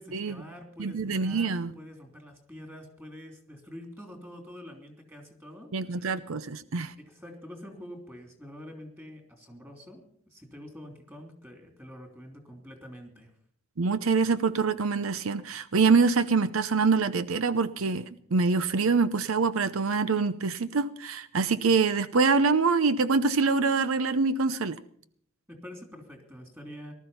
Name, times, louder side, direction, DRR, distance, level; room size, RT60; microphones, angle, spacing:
voice 1, 0.0-6.2 7.0-13.3 25.5-26.9, equal, 10° right, 4 dB, 3.1 m, -46 dB
voice 2, 0.8-1.7 5.7-6.9 13.8-18.0 18.3-24.7, right 4 dB, 80° right, 14 dB, 0.7 m, -25 dB
19.0 x 13.0 x 5.6 m, 0.64 s
head